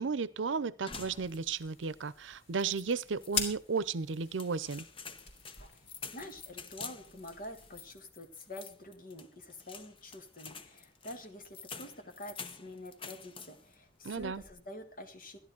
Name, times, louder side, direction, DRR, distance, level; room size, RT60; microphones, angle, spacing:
voice 1, 0.0-4.8 14.0-14.4, right 5 dB, 85° right, 0.6 m, -34 dB
sound 1, 0.9-1.8 2.1-2.2 2.6-3.5 4.1-13.8 14.1-14.6, left 5 dB, 30° left, 0.8 m, -48 dB
sound 2, 1.1-7.9, left 3 dB, 90° left, 3.2 m, -43 dB
voice 2, 6.0-15.4, left 1 dB, 50° left, 1.8 m, -47 dB
13.0 x 11.0 x 5.0 m
head